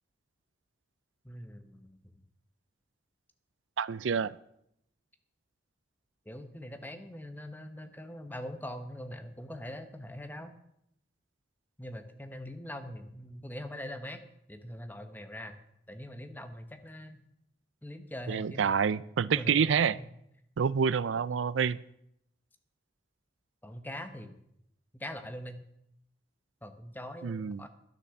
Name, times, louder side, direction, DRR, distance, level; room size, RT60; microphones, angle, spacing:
voice 1, 1.2-2.1 6.2-10.5 11.8-14.2 14.5-15.6 15.9-17.2 17.8-18.7 19.3-19.8 21.3-21.4 23.6-24.4 24.9-25.6 26.6-27.7, left 1 dB, 10° left, 1.1 m, -42 dB
voice 2, 3.8-4.4 18.3-19.9 20.6-21.8 27.2-27.6, right 6 dB, 85° right, 0.4 m, -27 dB
12.0 x 9.5 x 7.1 m
head